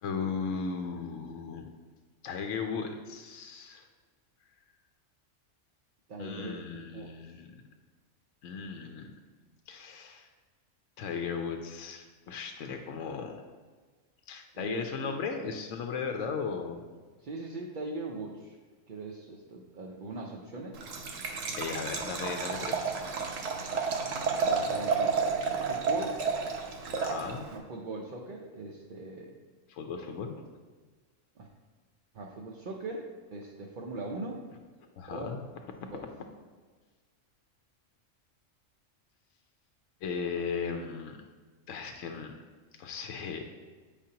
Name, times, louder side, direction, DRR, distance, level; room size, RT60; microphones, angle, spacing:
voice 1, 0.0-1.7 2.2-3.9 6.2-7.5 8.4-9.1 9.7-10.3 11.0-13.4 14.3-16.8 21.5-22.9 23.7-23.9 26.9-27.5 29.7-30.4 35.0-35.4 40.0-41.2 41.7-42.3 42.8-43.5, left 5 dB, 75° left, 4 dB, 0.9 m, -36 dB
voice 2, 6.1-6.6 6.9-7.4 14.5-15.1 17.2-18.6 18.9-20.9 23.7-23.9 24.3-25.2 25.7-26.2 27.5-29.3 31.4-31.5 32.1-34.4 35.1-35.3 35.8-36.1, right 2 dB, 50° right, -1 dB, 0.6 m, -40 dB
Liquid, 20.7-27.6, right 5 dB, 80° right, 1.2 m, -31 dB
8.7 x 5.1 x 2.8 m, 1.4 s
omnidirectional pair, 1.3 m